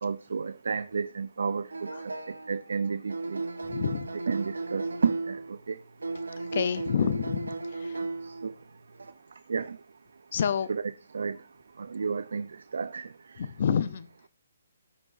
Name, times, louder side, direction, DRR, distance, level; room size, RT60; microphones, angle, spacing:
voice 1, 0.0-3.4 4.3-5.8 8.2-8.5 9.5-9.8 10.7-10.8 11.1-11.4 11.8-13.5, right 5 dB, 70° right, 0.6 m, -32 dB
sound 1, 1.7-2.7 3.1-5.6 6.0-8.6 8.9-9.1, right 3 dB, 85° right, 1.2 m, -35 dB
voice 2, 3.6-4.1 6.4-8.0 10.3-10.7 13.4-14.3, left 7 dB, 55° left, 0.8 m, -29 dB
18.5 x 6.2 x 2.7 m
hypercardioid pair, 145°, 0 cm